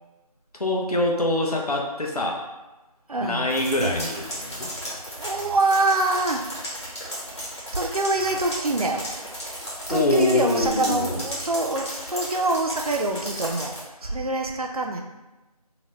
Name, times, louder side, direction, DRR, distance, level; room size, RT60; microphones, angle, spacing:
voice 1, 0.5-2.4 3.2-5.0 9.9-11.2, left 1 dB, 70° left, 0 dB, 0.7 m, -24 dB
voice 2, 3.1-3.5 5.2-6.4 7.7-9.1 9.9-15.0, right 2 dB, 65° right, 2 dB, 0.5 m, -25 dB
sound 1, 3.5-13.8, equal, 40° left, 1.1 m, -34 dB
2.9 x 2.1 x 2.9 m, 1.1 s
figure-of-eight pair, 175°, 20 cm